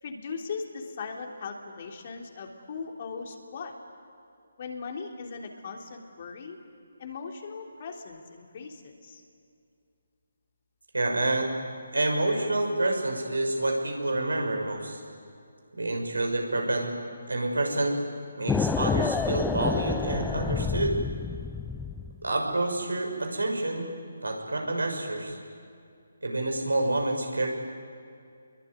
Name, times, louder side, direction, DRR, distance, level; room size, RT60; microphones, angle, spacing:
voice 1, 0.0-3.7 4.6-6.6 7.0-9.2, left 5 dB, 40° left, 2 dB, 3.4 m, -39 dB
voice 2, 10.9-11.5 11.9-15.0 15.7-16.9 17.3-18.0 18.4-21.0 22.2-23.9 24.2-25.4 26.2-27.5, right 2 dB, 75° right, 2 dB, 6.4 m, -28 dB
sound 1, 18.5-22.2, left 5 dB, 5° left, 0.6 m, -29 dB
27.0 x 22.0 x 9.6 m, 2.4 s
figure-of-eight pair, 145°, 0 cm